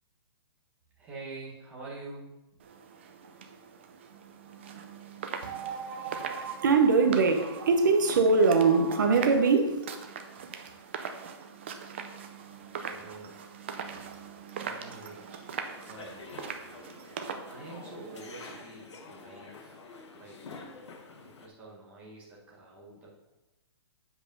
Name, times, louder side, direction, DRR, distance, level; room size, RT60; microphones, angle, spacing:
voice 1, 1.0-2.4 12.7-13.4 13.9-14.0 14.6-16.2 17.4-19.8 20.1-20.7 21.1-23.3, right 3 dB, 10° right, 1.2 m, -47 dB
sound 1, 2.6-18.6, right 6 dB, 25° right, 0.4 m, -42 dB
voice 2, 5.4-9.9, right 4 dB, 45° right, 0.9 m, -23 dB
sound 2, 15.6-21.5, left 4 dB, 90° left, 1.4 m, -48 dB
7.8 x 4.9 x 5.3 m
hypercardioid pair, 180°, 14 cm